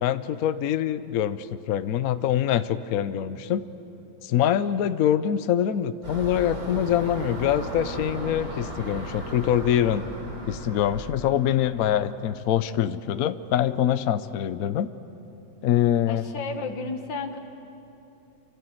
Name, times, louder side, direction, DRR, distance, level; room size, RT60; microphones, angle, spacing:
voice 1, 0.0-3.7 4.2-10.0 10.5-14.9 15.6-16.2, left 10 dB, 60° left, 12 dB, 1.0 m, -24 dB
sound 1, 6.0-11.7, right 1 dB, 60° right, 4.7 m, -36 dB
voice 2, 11.7-12.2 16.1-17.4, left 4 dB, 80° left, 5 dB, 2.1 m, -34 dB
28.5 x 25.0 x 7.8 m, 2.9 s
omnidirectional pair, 2.0 m